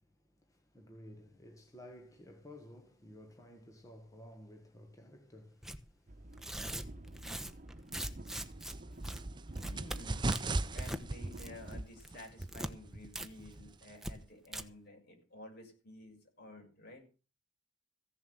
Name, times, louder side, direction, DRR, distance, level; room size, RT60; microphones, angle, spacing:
voice 1, 0.0-7.1, left 1 dB, 15° left, 1.3 m, -55 dB
Tearing, 5.6-5.8 6.3-8.7 9.0-9.2 9.5-10.0 10.3-11.0 11.3-11.7 12.0-12.7 13.1-13.3 13.5-13.6 14.0-14.1 14.4-14.6, right 1 dB, ahead, 1.0 m, -41 dB
sound 1, 6.1-11.8, right 1 dB, 40° right, 1.1 m, -50 dB
sound 2, 8.1-14.3, right 2 dB, 25° right, 0.6 m, -39 dB
voice 2, 9.6-17.0, left 1 dB, 55° left, 6.2 m, -52 dB
16.0 x 7.4 x 7.7 m
head